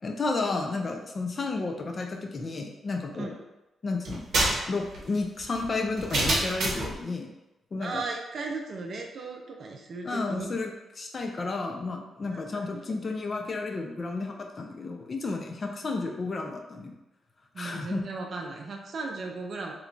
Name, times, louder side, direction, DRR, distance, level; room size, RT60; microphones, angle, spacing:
voice 1, 0.0-3.3 3.8-4.3 4.7-7.3 7.7-8.0 10.0-10.7 11.0-16.9 17.6-18.0, left 3 dB, 30° left, 3 dB, 0.3 m, -32 dB
sound 1, 4.0-7.0, right 2 dB, 60° right, 0.8 m, -28 dB
voice 2, 7.8-10.6 12.3-13.0 15.6-15.8 17.5-19.7, right 3 dB, 45° right, 2 dB, 0.4 m, -37 dB
2.9 x 2.2 x 3.8 m, 0.98 s
wide cardioid pair, 170°, 0 cm